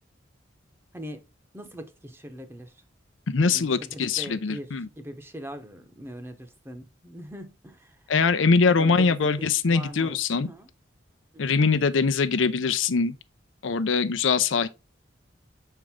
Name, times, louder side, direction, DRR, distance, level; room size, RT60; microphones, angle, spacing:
voice 1, 1.5-2.7 3.4-8.1 8.6-10.7 11.3-11.6, equal, 15° right, 0.8 m, -41 dB
voice 2, 3.3-4.9 8.1-10.5 11.4-13.1 13.6-14.7, left 4 dB, 90° left, 0.6 m, -22 dB
6.3 x 4.5 x 3.6 m
head